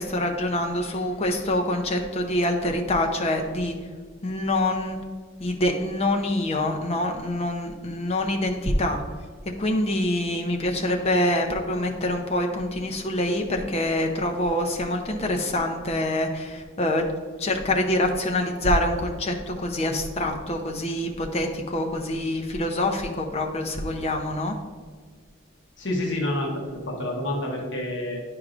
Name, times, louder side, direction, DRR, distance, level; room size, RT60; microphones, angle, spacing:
voice 1, 0.0-3.7 4.2-5.0 5.4-9.0 9.6-17.1 17.4-24.6, left 1 dB, 30° left, 3 dB, 0.6 m, -25 dB
voice 2, 25.8-28.2, left 1 dB, 65° left, -1 dB, 1.0 m, -28 dB
9.8 x 4.7 x 2.5 m, 1.5 s
head